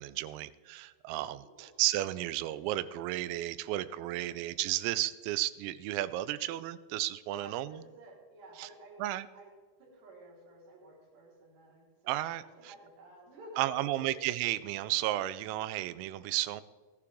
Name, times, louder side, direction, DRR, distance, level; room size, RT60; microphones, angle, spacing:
voice 1, 0.0-7.8 8.6-8.7 9.0-9.3 12.1-12.7 13.6-16.6, right 15 dB, 90° right, 15 dB, 3.3 m, -33 dB
voice 2, 1.1-1.7 3.8-4.4 7.3-9.1 9.3-9.5 9.8-12.1 12.4-14.1, right 1 dB, 55° right, -5 dB, 6.2 m, -53 dB
16.5 x 11.5 x 3.6 m, 1.5 s
omnidirectional pair, 5.9 m